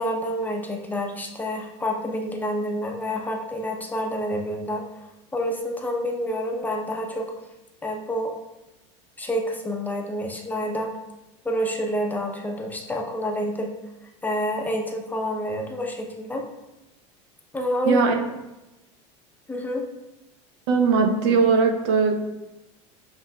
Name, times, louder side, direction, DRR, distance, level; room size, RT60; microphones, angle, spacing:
voice 1, 0.0-4.8 5.3-7.3 7.8-8.3 9.2-10.9 11.4-13.7 14.2-16.4 17.5-18.0 19.5-19.9, equal, 10° left, 1 dB, 0.6 m, -28 dB
voice 2, 17.9-18.2 20.7-22.2, right 5 dB, 70° right, 4 dB, 0.6 m, -19 dB
7.1 x 2.5 x 2.2 m, 0.97 s
supercardioid pair, 100°, 16 cm